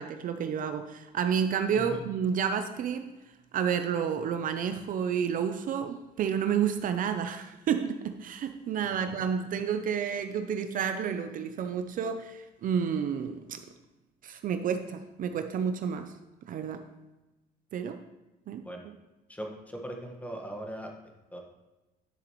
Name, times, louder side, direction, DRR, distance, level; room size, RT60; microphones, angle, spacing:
voice 1, 0.0-3.1 3.5-13.6 14.2-16.1 16.4-16.9 17.7-18.0 18.5-18.9, right 7 dB, 55° right, 8 dB, 0.6 m, -30 dB
voice 2, 19.3-20.9 21.3-21.4, equal, 10° left, 1 dB, 1.4 m, -39 dB
11.0 x 6.7 x 3.1 m, 1.0 s
cardioid pair, 110°, 17 cm